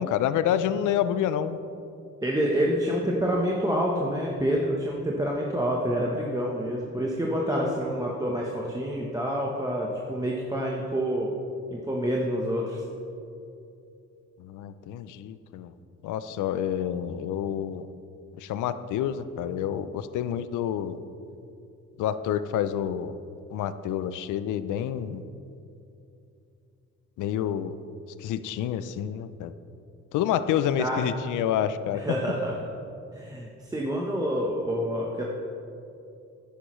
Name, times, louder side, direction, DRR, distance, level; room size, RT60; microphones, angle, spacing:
voice 1, 0.0-1.6 14.4-15.7 16.0-17.9 18.4-21.0 22.0-23.1 23.5-25.2 27.2-27.7 28.2-29.5 30.1-32.0, left 10 dB, 80° left, 13 dB, 0.5 m, -28 dB
voice 2, 2.2-11.4 11.7-12.8 30.8-31.1 31.9-32.6 33.1-35.2, equal, 10° right, -2 dB, 1.0 m, -27 dB
10.0 x 9.9 x 3.1 m, 2.7 s
cardioid pair, 90°, 30 cm